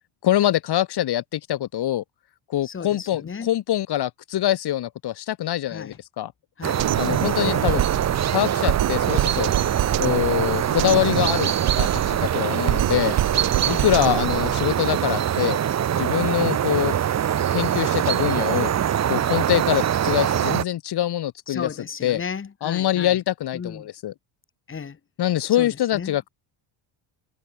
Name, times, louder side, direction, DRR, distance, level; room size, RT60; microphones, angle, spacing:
voice 1, 0.2-2.0 2.5-6.3 7.0-7.8 8.3-9.5 10.0-13.2 13.7-15.6 15.9-16.9 17.5-18.7 19.1-21.7 22.0-22.2 22.6-24.1 25.2-26.3, left 12 dB, 50° left, 4.3 m, -24 dB
voice 2, 2.6-3.5 5.7-6.0 6.6-7.7 13.7-13.9 21.5-23.2 23.5-23.9 24.7-25.0 25.5-26.2, left 6 dB, 25° left, 5.2 m, -35 dB
sound 1, 6.6-20.6, right 10 dB, 35° right, 1.2 m, -23 dB
Drum kit, 6.8-14.8, right 15 dB, 65° right, 3.7 m, -27 dB
cardioid pair, 160°, 49 cm